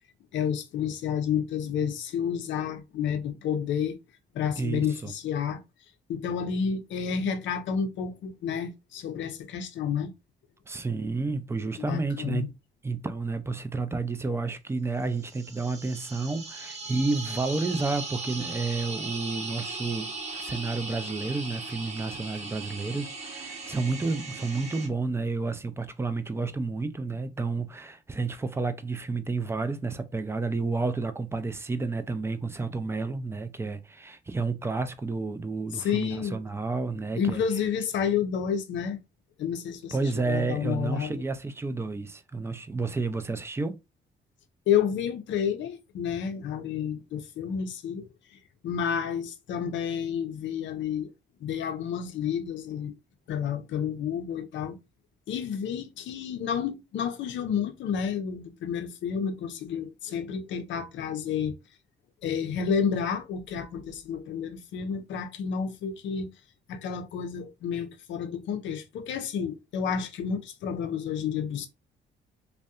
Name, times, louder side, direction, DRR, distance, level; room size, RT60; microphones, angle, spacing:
voice 1, 0.3-4.0 4.3-5.6 6.1-10.1 11.9-12.5 35.7-36.4 37.2-39.0 39.4-41.2 44.7-48.1 48.6-51.1 51.4-52.9 53.3-54.8 55.3-61.5 62.2-66.3 66.7-71.7, left 7 dB, 70° left, 0.5 m, -30 dB
voice 2, 4.6-5.1 10.7-12.5 12.8-37.4 39.9-43.8, right 3 dB, 15° right, 0.3 m, -31 dB
sound 1, 15.1-24.9, right 3 dB, 35° right, 0.8 m, -38 dB
2.6 x 2.1 x 2.3 m
cardioid pair, 90°, 20 cm